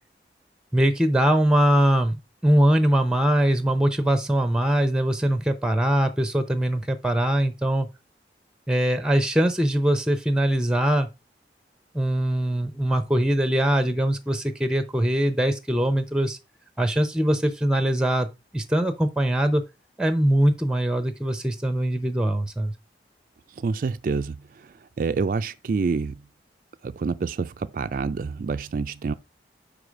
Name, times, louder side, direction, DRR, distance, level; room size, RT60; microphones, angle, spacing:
voice 1, 0.7-7.9 8.7-11.1 11.9-16.4 16.8-18.3 18.5-19.6 20.0-22.7, right 1 dB, 5° right, 0.7 m, -22 dB
voice 2, 23.6-26.2 26.8-29.1, right 4 dB, 50° right, 0.3 m, -27 dB
5.2 x 4.9 x 5.0 m
head